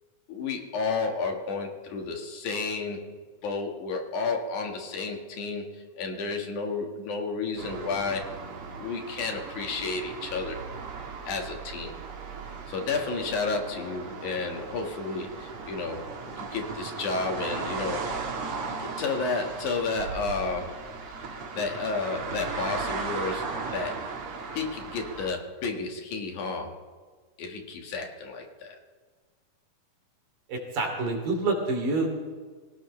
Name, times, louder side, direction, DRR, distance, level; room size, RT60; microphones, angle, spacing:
voice 1, 0.3-3.2 3.4-8.4 8.8-10.6 11.2-12.0 12.7-18.2 18.8-21.0 21.5-24.0 24.5-26.8 27.4-28.8, left 4 dB, 65° left, 2 dB, 3.2 m, -32 dB
sound 1, 7.6-25.3, right 4 dB, 45° right, 2.4 m, -37 dB
voice 2, 30.5-32.1, right 3 dB, 75° right, 1 dB, 4.5 m, -27 dB
25.5 x 17.0 x 3.3 m, 1.5 s
omnidirectional pair, 3.8 m